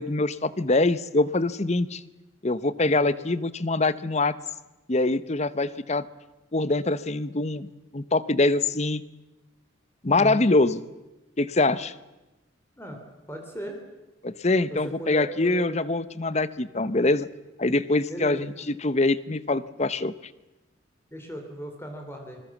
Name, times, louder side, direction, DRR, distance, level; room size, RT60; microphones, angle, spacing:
voice 1, 0.0-2.0 2.4-4.3 4.9-6.0 6.5-7.7 7.9-9.0 10.0-10.8 11.4-11.9 14.2-17.3 17.6-18.5 18.8-20.1, left 2 dB, 35° left, 16 dB, 0.8 m, -24 dB
voice 2, 2.8-3.1 10.1-10.5 12.8-13.0 13.3-13.8 14.7-15.7 18.1-18.5 21.1-22.4, equal, 10° left, 3 dB, 3.2 m, -37 dB
26.0 x 21.0 x 7.3 m, 1.0 s
head